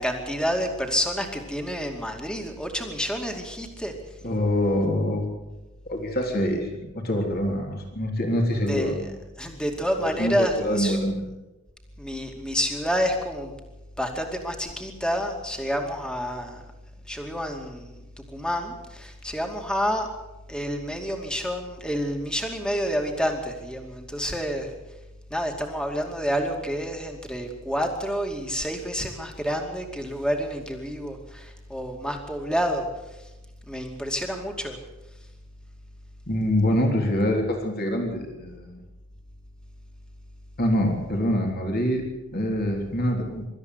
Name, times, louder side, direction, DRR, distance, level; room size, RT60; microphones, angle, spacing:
voice 1, 0.0-3.9 8.7-8.9 9.4-11.0 12.0-13.5 14.0-16.6 17.1-18.0 18.3-20.1 20.5-24.7 25.3-32.9 33.7-34.8, equal, 5° left, 3 dB, 2.4 m, -29 dB
voice 2, 4.2-5.4 5.9-9.1 10.0-11.2 36.3-38.8 40.6-42.0 42.3-43.5, left 1 dB, 45° left, 2 dB, 3.6 m, -25 dB
24.5 x 13.5 x 8.1 m, 1.0 s
head